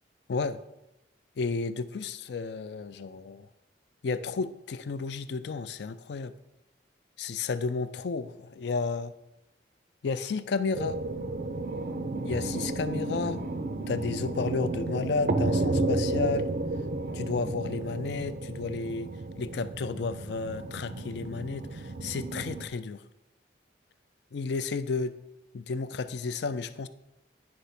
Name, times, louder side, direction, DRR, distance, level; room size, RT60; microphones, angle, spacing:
voice 1, 1.4-3.5 4.0-6.3 7.2-9.1 10.0-11.0 12.2-13.4 13.9-16.5 17.1-19.1 19.4-23.0 24.3-25.2 25.5-26.9, left 4 dB, 70° left, 13 dB, 0.4 m, -32 dB
sound 1, 10.7-22.7, right 2 dB, 50° right, 0.5 m, -32 dB
9.5 x 3.4 x 5.7 m, 0.92 s
head